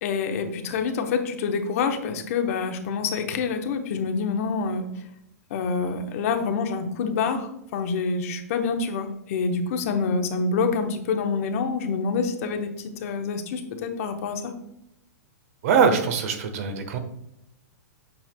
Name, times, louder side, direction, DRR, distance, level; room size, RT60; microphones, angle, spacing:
voice 1, 0.0-4.8 5.5-14.5, left 5 dB, 55° left, 6 dB, 1.0 m, -27 dB
voice 2, 15.6-17.0, right 6 dB, 60° right, 7 dB, 1.1 m, -22 dB
7.9 x 5.8 x 2.2 m, 0.80 s
hypercardioid pair, 110°, 9 cm